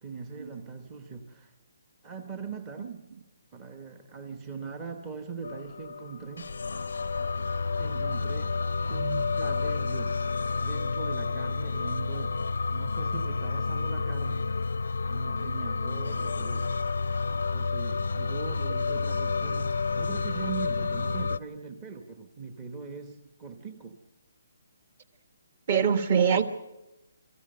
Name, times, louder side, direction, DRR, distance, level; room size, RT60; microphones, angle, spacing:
voice 1, 0.0-1.5 2.0-3.0 3.5-6.5 7.8-8.6 8.9-10.2 10.6-14.6 15.1-16.7 17.5-24.0, right 5 dB, 15° right, 6 dB, 0.9 m, -40 dB
sound 1, 5.4-21.4, left 4 dB, 90° left, 0.6 m, -30 dB
voice 2, 25.7-26.4, right 7 dB, 35° right, 10 dB, 1.4 m, -23 dB
25.0 x 14.5 x 7.7 m, 0.97 s
hypercardioid pair, 175°, 0 cm